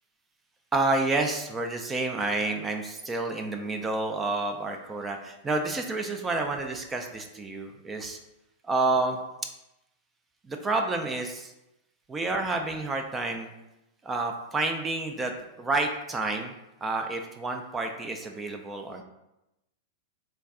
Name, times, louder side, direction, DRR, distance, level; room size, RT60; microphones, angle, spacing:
voice 1, 0.7-8.2 8.6-9.2 10.5-11.5 12.1-13.5 14.0-15.3 15.6-16.5 16.8-19.0, right 3 dB, 20° right, 4 dB, 0.3 m, -29 dB
3.4 x 2.2 x 3.5 m, 0.92 s
hypercardioid pair, 115°, 0 cm